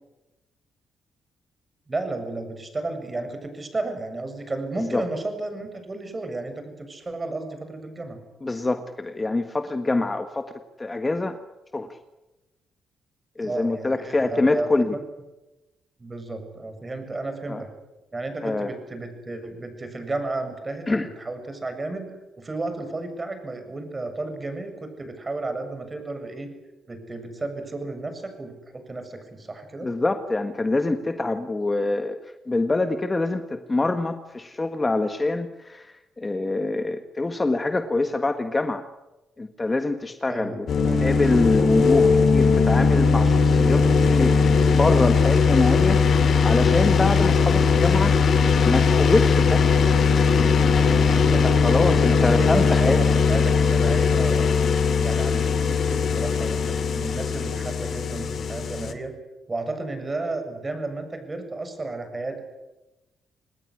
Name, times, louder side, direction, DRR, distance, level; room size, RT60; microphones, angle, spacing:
voice 1, 1.9-8.2 13.4-14.7 16.0-17.7 18.1-26.5 26.9-29.9 40.3-40.6 40.8-41.1 41.5-41.6 51.1-54.5 55.0-59.1 59.5-62.4, right 2 dB, 25° right, 7 dB, 7.3 m, -33 dB
voice 2, 4.8-5.1 8.4-10.5 10.8-11.4 11.7-11.9 13.4-15.0 17.5-17.6 18.4-18.7 20.9-21.1 29.8-32.2 32.5-35.9 36.2-38.9 39.4-40.7 41.0-44.4 44.7-48.2 48.6-49.7 51.3-53.0, left 2 dB, 20° left, 8 dB, 1.6 m, -25 dB
sound 1, 40.7-58.9, left 5 dB, 55° left, 2.8 m, -19 dB
26.5 x 20.0 x 9.9 m, 1.0 s
cardioid pair, 90°, 0 cm